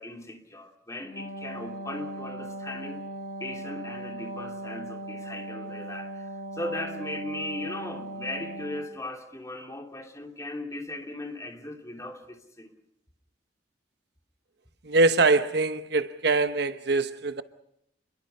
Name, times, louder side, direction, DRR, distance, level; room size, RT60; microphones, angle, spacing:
voice 1, 0.0-3.0 3.4-12.7, left 1 dB, 15° left, 2.9 m, -38 dB
Wind instrument woodwind instrument, 1.0-9.0, right 1 dB, 85° left, 3.6 m, -38 dB
voice 2, 14.8-17.4, right 3 dB, 60° right, 1.0 m, -23 dB
28.0 x 22.5 x 5.5 m
head